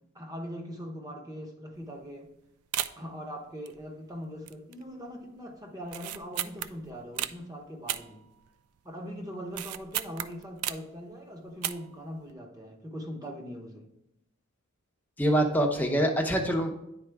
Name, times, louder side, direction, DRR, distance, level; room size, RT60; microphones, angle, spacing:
voice 1, 0.1-2.3 3.0-8.3 8.8-13.9, equal, 15° right, 1 dB, 0.9 m, -41 dB
sound 1, 1.8-2.0 2.3-2.4 2.7-3.2 3.7-4.1 4.5-4.9 5.1-5.2 5.8-7.4 7.9-8.8 9.1-11.0 11.5-12.0 12.3-12.4, right 12 dB, 90° right, 0.4 m, -35 dB
voice 2, 15.2-16.7, right 1 dB, 10° left, 2 dB, 0.7 m, -25 dB
9.8 x 4.2 x 3.5 m, 0.82 s
head